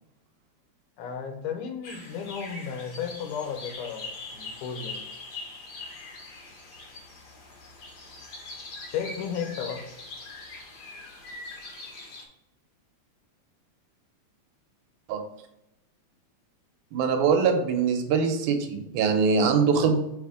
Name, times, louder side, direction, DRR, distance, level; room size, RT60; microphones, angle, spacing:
voice 1, 1.0-5.0 8.9-9.8, left 7 dB, 85° left, 5 dB, 2.4 m, -34 dB
sound 1, 1.8-12.2, left 3 dB, 50° left, 1.2 m, -42 dB
voice 2, 16.9-20.0, right 5 dB, 85° right, 5 dB, 2.3 m, -23 dB
6.5 x 3.4 x 5.0 m, 0.85 s
omnidirectional pair, 3.5 m